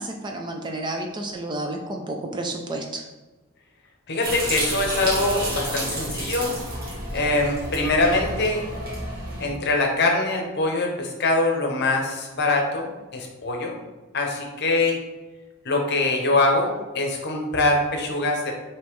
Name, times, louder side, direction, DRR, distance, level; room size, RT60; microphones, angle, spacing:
voice 1, 0.0-3.0, right 2 dB, 20° right, 2 dB, 0.3 m, -31 dB
voice 2, 4.1-6.5 7.1-8.6 9.4-12.9 13.1-13.7 14.1-15.0 15.6-16.7 16.9-18.6, left 2 dB, 50° left, 1 dB, 0.8 m, -23 dB
sound 1, 4.2-9.5, right 1 dB, 45° right, 1.2 m, -30 dB
5.2 x 2.9 x 3.1 m, 1.2 s
head